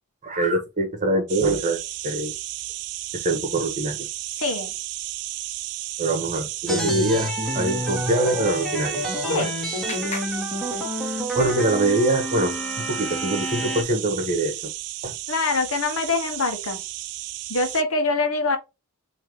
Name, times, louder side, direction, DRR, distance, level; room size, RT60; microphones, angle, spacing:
voice 1, 0.2-1.8 2.0-2.3 3.1-4.1 6.0-9.5 10.0-10.1 11.3-12.5 12.9-14.5 15.0-15.1, right 2 dB, 35° right, 1.3 m, -24 dB
sound 1, 1.3-17.8, right 15 dB, 85° right, 0.4 m, -33 dB
voice 2, 4.4-4.7 9.3-9.5 15.3-16.8 17.5-18.6, left 3 dB, 65° left, 1.1 m, -24 dB
sound 2, 6.7-13.8, left 1 dB, ahead, 1.5 m, -29 dB
Clapping, 8.8-11.4, left 4 dB, 30° left, 1.1 m, -41 dB
5.6 x 2.9 x 3.0 m
head